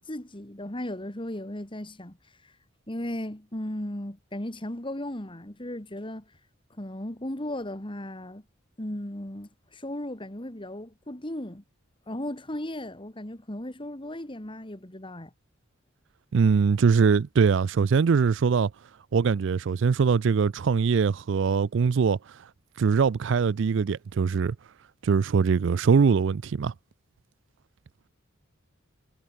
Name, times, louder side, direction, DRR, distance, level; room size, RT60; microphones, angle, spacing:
voice 1, 0.1-2.2 2.9-6.2 6.8-8.4 8.8-11.6 12.1-15.3, left 1 dB, 25° left, 2.2 m, -36 dB
voice 2, 16.3-18.7 19.1-22.2 22.8-24.6 25.0-26.7, right 5 dB, 60° right, 0.4 m, -22 dB
head